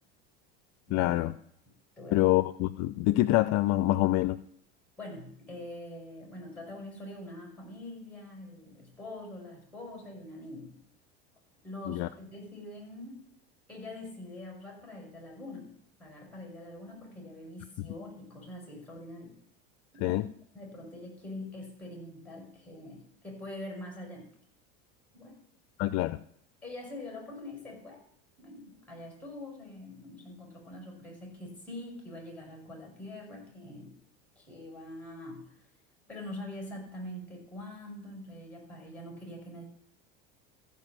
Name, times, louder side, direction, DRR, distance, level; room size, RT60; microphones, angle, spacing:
voice 1, 0.9-1.3 2.1-4.4 11.9-12.1 20.0-20.2 25.8-26.2, left 17 dB, 55° left, 15 dB, 0.5 m, -26 dB
voice 2, 2.0-2.3 5.0-10.8 11.6-13.2 13.7-15.7 16.0-19.3 19.9-20.2 20.5-24.3 25.1-25.4 26.6-28.0 28.4-34.0 34.4-35.7 36.1-39.6, left 1 dB, 5° left, 0 dB, 6.3 m, -44 dB
15.0 x 5.4 x 7.5 m, 0.67 s
supercardioid pair, 100°, 32 cm